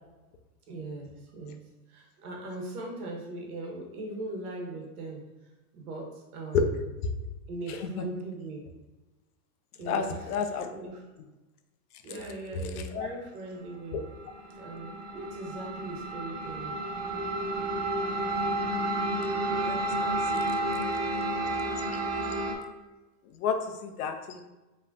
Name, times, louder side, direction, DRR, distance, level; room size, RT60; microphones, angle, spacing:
voice 1, 0.7-1.6 1.9-5.2 5.7-6.8 7.5-8.6 9.8-10.3 10.7-11.0 12.0-14.0 14.6-16.8, right 2 dB, 80° right, -1 dB, 1.5 m, -39 dB
voice 2, 7.7-8.0 9.9-10.7 12.9-13.1 13.9-14.0 18.3-18.5 19.6-20.8 23.4-23.6 23.8-24.4, left 6 dB, 80° left, 7 dB, 0.8 m, -31 dB
sound 1, 14.0-22.5, right 2 dB, 55° right, 0.9 m, -31 dB
5.4 x 3.2 x 2.7 m, 1.1 s
supercardioid pair, 170°, 44 cm